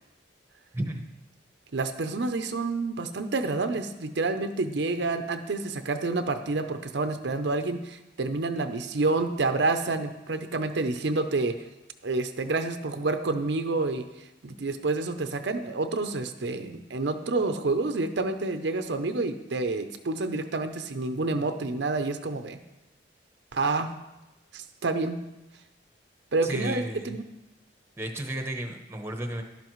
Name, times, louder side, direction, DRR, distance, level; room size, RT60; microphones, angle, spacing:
voice 1, 1.7-11.6 12.0-14.0 14.4-22.6 23.5-23.9 24.5-25.2 26.3-27.2, right 3 dB, 65° right, 8 dB, 0.6 m, -28 dB
voice 2, 26.4-27.2 28.0-29.4, right 1 dB, 15° right, 4 dB, 0.9 m, -33 dB
12.0 x 11.5 x 3.1 m, 0.98 s
head